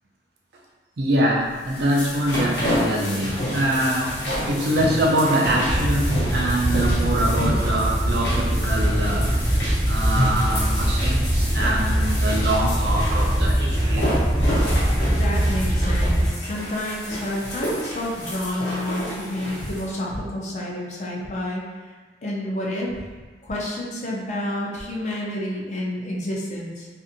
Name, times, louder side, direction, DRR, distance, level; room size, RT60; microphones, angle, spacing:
voice 1, 1.0-4.2 4.5-9.3 9.8-14.1, right 1 dB, 70° right, -2 dB, 0.5 m, -24 dB
sound 1, 1.5-19.9, equal, 70° left, 0.9 m, -29 dB
sound 2, 5.6-16.3, equal, ahead, 0.7 m, -22 dB
voice 2, 15.0-21.6 22.2-23.0 23.4-26.9, left 1 dB, 40° left, -4 dB, 0.5 m, -29 dB
2.6 x 2.5 x 2.6 m, 1.4 s
head